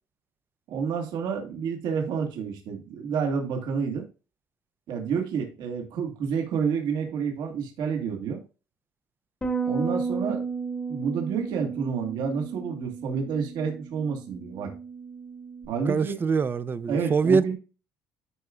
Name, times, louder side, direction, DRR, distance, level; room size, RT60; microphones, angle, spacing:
voice 1, 0.7-4.1 4.9-8.4 9.6-10.5 10.9-14.7 15.7-16.2 16.9-17.5, right 6 dB, 70° right, 1.8 m, -29 dB
Bass guitar, 9.4-15.7, right 5 dB, 15° left, 1.1 m, -33 dB
voice 2, 15.9-17.5, right 5 dB, 30° right, 0.5 m, -24 dB
11.0 x 4.8 x 2.4 m
cardioid pair, 105°, 7 cm